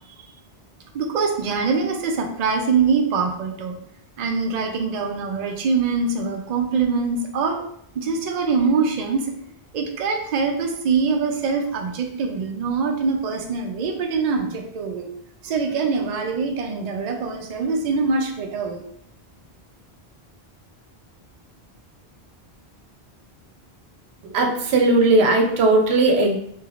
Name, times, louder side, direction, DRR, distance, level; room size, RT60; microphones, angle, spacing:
voice 1, 0.9-3.8 4.2-7.6 8.0-9.2 9.7-15.1 15.4-18.8, right 5 dB, 55° right, 3 dB, 0.5 m, -23 dB
voice 2, 24.2-26.4, right 2 dB, 85° right, 3 dB, 0.9 m, -18 dB
3.2 x 2.8 x 2.4 m, 0.71 s
omnidirectional pair, 1.1 m